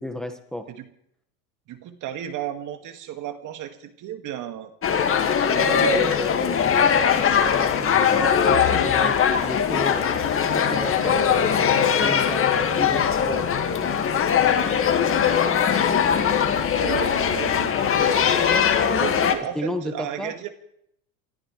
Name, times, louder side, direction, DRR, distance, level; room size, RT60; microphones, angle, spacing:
voice 1, 0.0-0.7 5.5-10.2 10.5-11.7 12.0-13.5 19.5-20.3, equal, ahead, 7 dB, 1.5 m, -33 dB
voice 2, 1.7-4.7 5.4-6.2 11.0-11.3 14.4-15.3 16.2-18.3 19.0-20.5, right 10 dB, 45° right, 7 dB, 2.1 m, -34 dB
sound 1, 4.8-19.3, left 7 dB, 30° left, 1.9 m, -21 dB
28.5 x 14.0 x 3.3 m, 0.74 s
hypercardioid pair, 90°, 41 cm